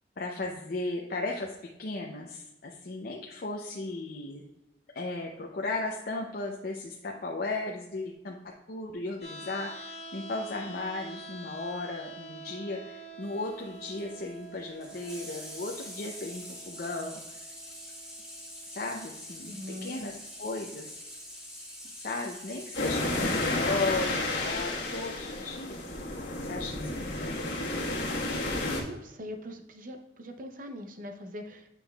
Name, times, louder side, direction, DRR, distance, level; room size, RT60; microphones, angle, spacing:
voice 1, 0.2-4.4 4.9-17.4 18.7-19.5 19.8-20.9 22.0-25.8 26.4-27.4, left 2 dB, 55° left, 0 dB, 0.6 m, -36 dB
sound 1, 9.2-21.2, right 2 dB, 35° left, 1.1 m, -47 dB
Water tap faucet / Sink (filling or washing), 13.2-25.1 26.4-26.5, equal, 5° right, 1.6 m, -46 dB
voice 2, 19.5-20.0 28.5-31.7, left 1 dB, 50° right, 6 dB, 0.7 m, -42 dB
sound 2, 22.7-28.8, left 2 dB, 85° left, 1.5 m, -31 dB
8.3 x 5.4 x 2.3 m, 0.94 s
head